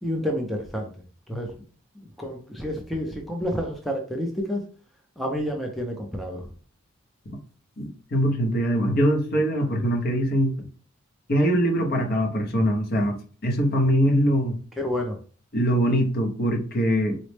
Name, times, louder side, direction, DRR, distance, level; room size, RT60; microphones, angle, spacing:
voice 1, 0.0-0.9 1.3-1.5 2.0-4.6 5.2-6.5 14.8-15.2, equal, ahead, 0.4 m, -29 dB
voice 2, 7.8-10.7 11.3-13.2 13.4-14.6 15.5-17.2, equal, 50° left, 0.7 m, -22 dB
4.0 x 2.1 x 3.2 m
head